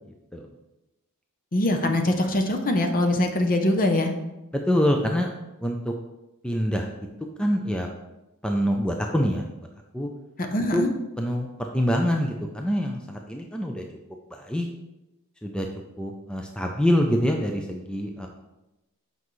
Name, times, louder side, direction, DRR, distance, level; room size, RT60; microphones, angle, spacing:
voice 1, 1.5-4.1 10.5-10.9, left 1 dB, 40° left, 5 dB, 0.7 m, -23 dB
voice 2, 4.5-5.3 5.6-5.9 6.4-6.9 7.4-7.9 8.4-9.4 9.9-10.1 10.7-10.8 11.2-13.8 14.3-14.7 15.4-15.7 16.0-18.3, equal, 5° left, 2 dB, 0.5 m, -25 dB
8.1 x 5.4 x 3.1 m, 0.95 s
head